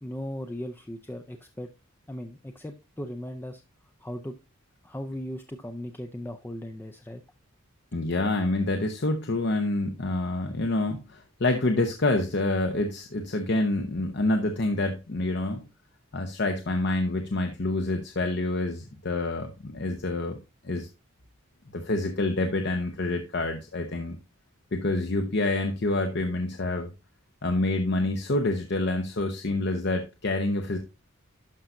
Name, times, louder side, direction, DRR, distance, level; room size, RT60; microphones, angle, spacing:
voice 1, 0.0-1.7 2.1-3.6 4.0-4.3 4.8-7.2, equal, 10° left, 0.4 m, -37 dB
voice 2, 7.9-15.6 16.1-20.4 20.6-20.9 21.7-24.2 24.7-26.9 27.4-30.8, left 2 dB, 55° left, 0.8 m, -27 dB
12.0 x 5.5 x 2.5 m
head